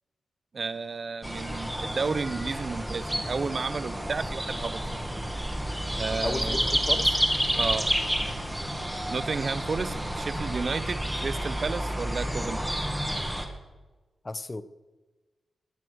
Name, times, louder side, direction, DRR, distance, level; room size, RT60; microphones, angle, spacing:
voice 1, 0.5-5.0 5.9-6.7 7.6-7.9 9.1-12.6, right 4 dB, 40° right, 15 dB, 0.5 m, -32 dB
sound 1, 1.2-13.5, equal, 5° right, 1.6 m, -30 dB
voice 2, 6.2-7.1 14.2-14.6, left 2 dB, 20° left, 13 dB, 0.7 m, -33 dB
20.0 x 8.4 x 6.3 m, 1.2 s
wide cardioid pair, 155°, 0 cm